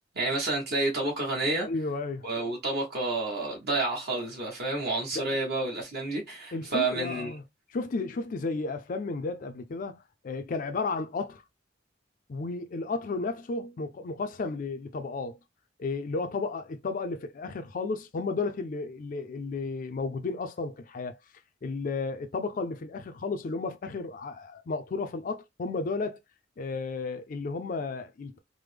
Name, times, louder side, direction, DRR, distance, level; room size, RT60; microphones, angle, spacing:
voice 1, 0.1-1.7 2.2-7.3, right 2 dB, 55° right, 1.1 m, -29 dB
voice 2, 1.6-2.3 5.1-5.4 6.5-7.4 7.7-11.4 12.3-15.4 15.8-21.1 21.6-26.2 26.6-28.4, left 3 dB, 45° left, 0.4 m, -33 dB
3.4 x 2.1 x 3.2 m
head